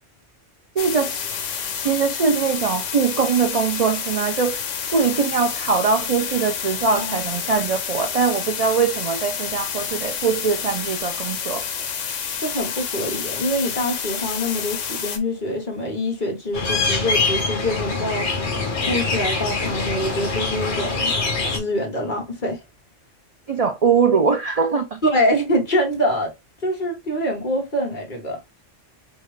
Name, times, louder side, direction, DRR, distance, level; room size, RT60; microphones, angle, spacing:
sound 1, 0.8-15.2, left 7 dB, 80° left, 1.2 m, -29 dB
voice 1, 0.8-1.3 1.7-4.6 4.9-11.7 23.5-25.0, right 5 dB, 55° right, 0.4 m, -22 dB
voice 2, 12.4-18.3 18.8-21.1 21.5-22.6 25.0-26.3 26.6-28.4, equal, 40° left, 1.6 m, -25 dB
sound 2, 16.5-21.6, left 3 dB, 65° left, 1.4 m, -24 dB
5.2 x 2.4 x 3.2 m
omnidirectional pair, 1.3 m